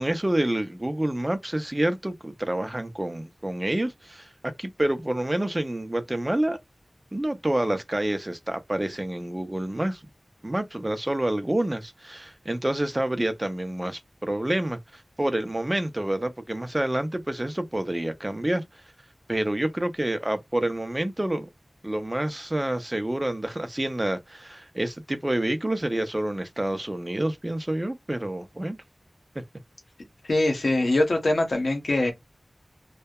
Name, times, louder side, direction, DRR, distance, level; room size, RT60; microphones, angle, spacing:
voice 1, 0.0-6.6 7.1-10.0 10.4-18.6 19.3-21.5 21.8-28.8, right 1 dB, 25° right, 0.4 m, -28 dB
voice 2, 30.2-32.1, left 2 dB, 85° left, 0.8 m, -23 dB
2.7 x 2.2 x 2.2 m
wide cardioid pair, 60°, 0 cm